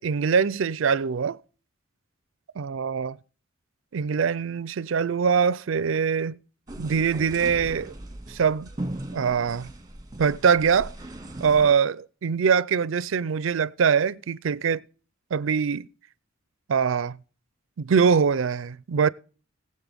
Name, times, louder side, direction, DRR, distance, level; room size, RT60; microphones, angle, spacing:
voice 1, 0.0-1.4 2.6-3.1 3.9-6.4 6.8-7.9 8.3-8.7 9.1-9.7 10.2-10.9 11.4-14.8 15.3-15.9 16.7-17.2 17.8-19.1, right 6 dB, 70° right, 0.5 m, -23 dB
sound 1, 6.7-11.7, right 1 dB, 20° right, 1.8 m, -38 dB
19.5 x 7.6 x 3.5 m
head